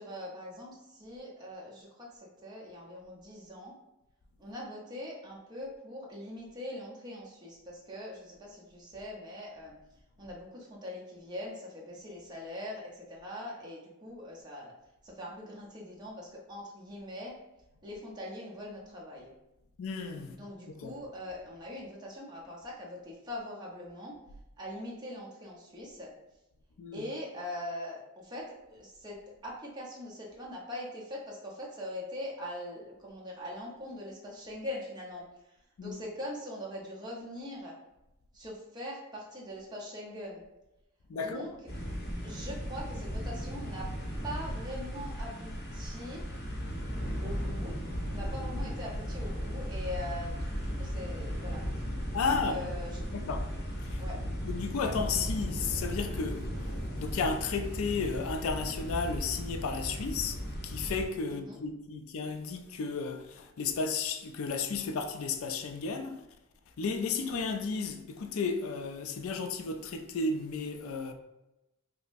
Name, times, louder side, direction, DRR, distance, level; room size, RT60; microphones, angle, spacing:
voice 1, 0.0-3.7 4.4-9.7 10.2-14.7 15.0-17.3 17.8-19.3 20.2-24.1 24.6-26.1 26.9-35.2 35.8-37.8 38.3-40.4 41.1-41.5 42.2-43.9 44.2-46.2 47.2-47.8 48.1-50.3 50.6-51.6 52.2-53.0 54.0-54.2 61.3-61.6, left 1 dB, 20° right, 0.9 m, -42 dB
voice 2, 19.8-20.3 20.8-20.9 26.8-27.0 35.8-36.0 41.1-41.5 52.1-52.7 53.1-53.4 53.9-54.0 54.4-56.5 57.0-60.4 60.6-66.2 66.8-71.1, left 4 dB, 75° left, 0.4 m, -33 dB
sound 1, 41.7-61.1, equal, 50° left, 0.8 m, -36 dB
5.1 x 2.1 x 2.5 m
head